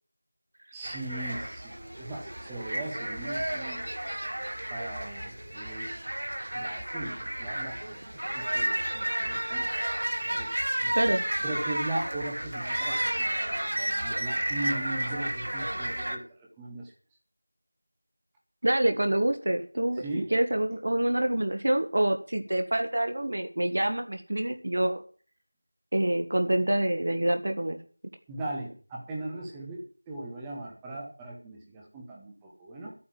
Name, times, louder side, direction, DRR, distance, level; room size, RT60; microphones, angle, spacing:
voice 1, 0.7-3.9 4.7-5.9 6.5-9.7 10.4-11.0 11.4-13.3 13.9-16.9 20.0-20.3 28.3-32.9, right 2 dB, 5° right, -2 dB, 1.0 m, -38 dB
sound 1, 0.8-16.2, right 1 dB, 50° right, 2.2 m, -32 dB
voice 2, 10.9-11.2 18.6-25.0 25.9-27.8, right 1 dB, 35° right, 7 dB, 1.5 m, -26 dB
12.5 x 8.6 x 7.5 m, 0.41 s
figure-of-eight pair, 180°, 0 cm